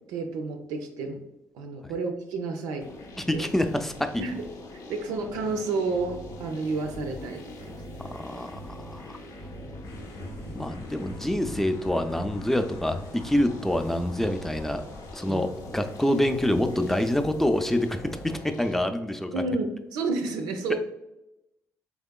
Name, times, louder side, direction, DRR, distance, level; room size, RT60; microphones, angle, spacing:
voice 1, 0.1-1.2 1.5-2.9 3.3-3.4 4.2-4.3 4.9-7.4 7.7-8.0 9.6-9.8 15.2-15.5 19.3-20.8, right 3 dB, 80° right, 4 dB, 0.4 m, -30 dB
sound 1, 2.8-18.8, left 1 dB, 60° left, 0.6 m, -43 dB
voice 2, 3.2-4.2 8.0-9.2 10.5-14.8 15.1-19.4, left 1 dB, 5° left, 7 dB, 0.4 m, -26 dB
sound 2, 9.8-15.1, left 1 dB, 85° left, 1.2 m, -42 dB
3.5 x 3.0 x 2.2 m, 0.91 s
supercardioid pair, 55°, 7 cm